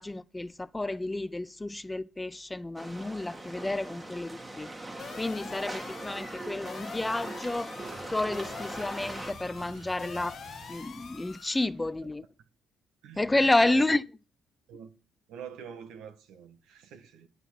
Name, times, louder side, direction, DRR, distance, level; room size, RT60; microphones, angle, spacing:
voice 1, 0.0-4.7 5.2-7.7 8.1-10.4 10.7-12.2 13.2-14.0, left 2 dB, 15° left, 0.5 m, -30 dB
sound 1, 2.8-9.3, right 1 dB, 20° right, 1.9 m, -41 dB
sound 2, 5.0-11.7, left 7 dB, 55° left, 0.9 m, -45 dB
sound 3, 7.7-11.9, right 4 dB, 55° right, 2.8 m, -50 dB
voice 2, 15.3-17.3, right 7 dB, 90° right, 1.6 m, -45 dB
11.0 x 5.6 x 5.7 m
cardioid pair, 90°, 0 cm